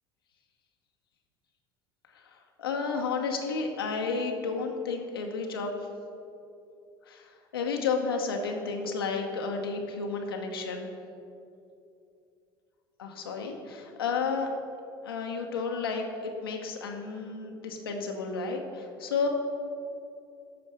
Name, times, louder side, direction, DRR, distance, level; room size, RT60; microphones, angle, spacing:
voice 1, 2.1-5.7 7.1-7.3 7.5-10.9 13.0-14.5 15.0-19.3, left 4 dB, 80° left, 2 dB, 1.0 m, -32 dB
12.5 x 4.4 x 6.5 m, 2.6 s
figure-of-eight pair, 65°, 12 cm